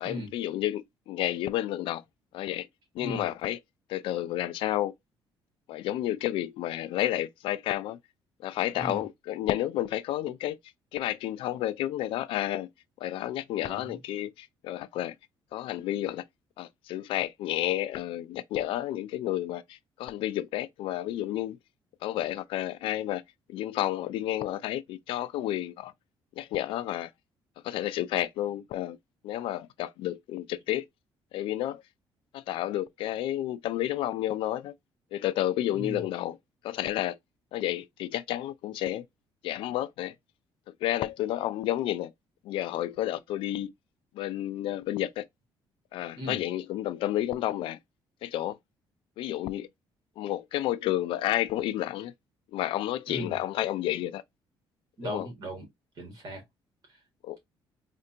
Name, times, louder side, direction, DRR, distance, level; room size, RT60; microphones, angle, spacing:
voice 1, 0.0-2.0 2.3-2.7 3.0-3.6 3.9-4.9 5.7-8.0 8.4-10.6 10.9-12.7 13.0-15.1 15.5-16.2 16.6-21.6 22.0-23.2 23.5-25.9 26.4-27.1 27.6-29.0 29.2-30.8 31.3-31.8 32.3-34.7 35.1-36.4 36.6-37.2 37.5-39.0 39.4-40.1 40.8-42.1 42.5-43.7 44.2-45.2 45.9-47.8 48.2-48.6 49.2-49.7 50.2-52.1 52.5-54.2 55.0-55.3 57.2-57.4, left 13 dB, 75° left, 0.3 m, -31 dB
voice 2, 13.6-14.0 35.7-36.0 46.2-46.4 53.1-53.4 55.0-55.6 56.0-56.4, right 1 dB, 45° right, 1.7 m, -37 dB
4.3 x 2.5 x 2.7 m
cardioid pair, 175°, 9 cm